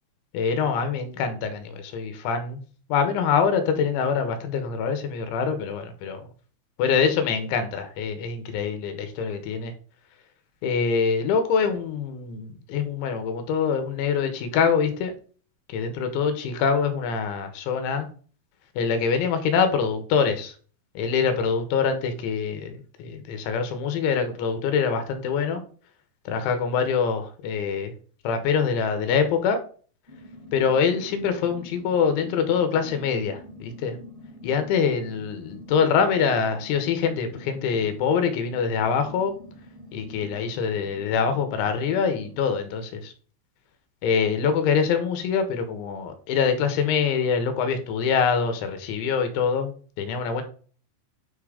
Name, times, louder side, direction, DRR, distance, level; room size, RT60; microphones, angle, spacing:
voice 1, 0.3-2.6 2.9-6.2 6.8-9.7 10.6-15.1 15.7-18.1 18.8-20.5 21.0-25.6 26.3-27.9 28.2-29.6 30.5-33.9 34.4-39.3 39.9-43.1 44.0-49.7 50.0-50.4, left 6 dB, 85° left, 7 dB, 3.3 m, -24 dB
sound 1, 30.1-42.4, left 1 dB, 10° right, 1.8 m, -45 dB
8.9 x 3.7 x 4.9 m, 0.43 s
omnidirectional pair, 5.3 m